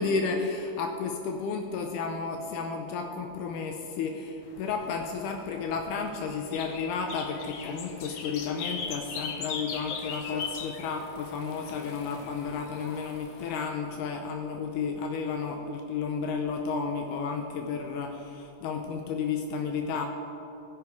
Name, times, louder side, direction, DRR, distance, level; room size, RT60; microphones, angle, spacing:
voice 1, 0.0-20.1, left 5 dB, 85° left, 4 dB, 2.2 m, -32 dB
sound 1, 4.4-13.6, left 5 dB, 70° left, 1.7 m, -40 dB
16.5 x 5.5 x 4.6 m, 2.8 s
omnidirectional pair, 3.6 m